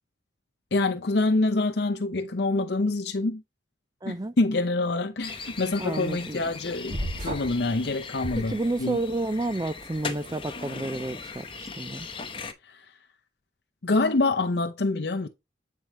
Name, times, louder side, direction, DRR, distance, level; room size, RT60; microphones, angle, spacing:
voice 1, 0.7-3.4 4.1-7.0 7.2-9.0 12.7-12.8 13.8-15.3, left 2 dB, 60° left, 0.7 m, -26 dB
voice 2, 4.0-4.3 5.8-6.5 8.3-12.1, right 2 dB, 20° right, 0.5 m, -31 dB
sound 1, 5.2-12.5, left 4 dB, 25° left, 1.0 m, -39 dB
sound 2, 6.9-7.6 8.2-9.1, equal, 45° right, 2.3 m, -34 dB
9.1 x 4.7 x 3.0 m
head